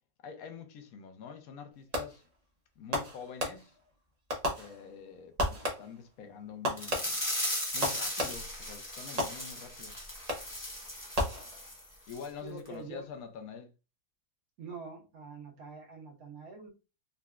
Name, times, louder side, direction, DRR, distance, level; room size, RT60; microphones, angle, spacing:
voice 1, 0.2-2.2 2.8-3.7 4.5-7.1 7.7-10.0 12.1-13.7, left 6 dB, 75° left, 1.1 m, -46 dB
Fireworks, 1.9-2.4 2.9-3.9 4.3-5.1 5.4-6.1 6.6-8.6 9.2-9.8 10.3-10.7 11.1-11.9, equal, 35° right, 0.6 m, -35 dB
sound 1, 6.8-11.8 12.1-12.2 12.6-12.7, left 1 dB, 20° left, 0.6 m, -37 dB
voice 2, 12.4-13.0 14.6-16.7, right 5 dB, 80° right, 1.3 m, -45 dB
3.9 x 2.2 x 2.3 m
omnidirectional pair, 1.5 m